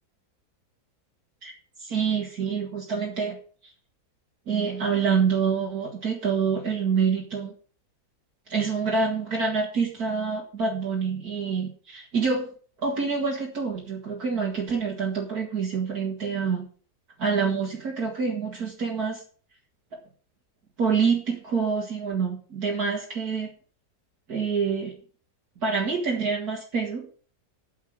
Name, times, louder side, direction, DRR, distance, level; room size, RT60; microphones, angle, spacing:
voice 1, 1.8-3.4 3.6-3.7 4.5-7.5 8.5-12.5 12.8-16.7 17.2-19.2 20.8-23.5 24.3-24.9 25.6-27.1, right 5 dB, 65° right, -2 dB, 2.5 m, -26 dB
8.5 x 7.3 x 7.7 m, 0.42 s
omnidirectional pair, 1.8 m